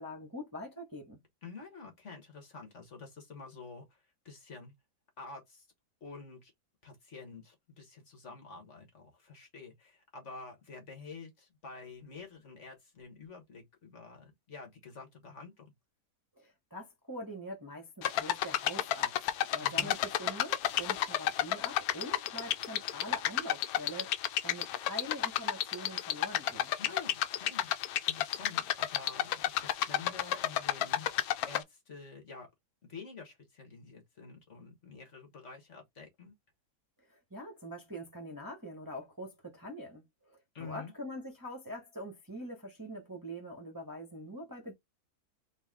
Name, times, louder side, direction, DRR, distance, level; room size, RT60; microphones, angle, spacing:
voice 1, 0.0-1.2 16.4-19.1 19.5-26.8 37.1-44.7, equal, 15° right, 0.9 m, -44 dB
voice 2, 1.4-4.7 5.2-5.7 6.0-6.5 6.8-15.7 19.6-20.0 26.8-27.7 28.0-31.1 31.4-32.5 32.8-36.3 40.5-40.9, left 4 dB, 50° left, 1.4 m, -48 dB
sound 1, 18.0-31.6, left 12 dB, 70° left, 1.0 m, -32 dB
4.0 x 2.6 x 3.6 m
omnidirectional pair, 1.7 m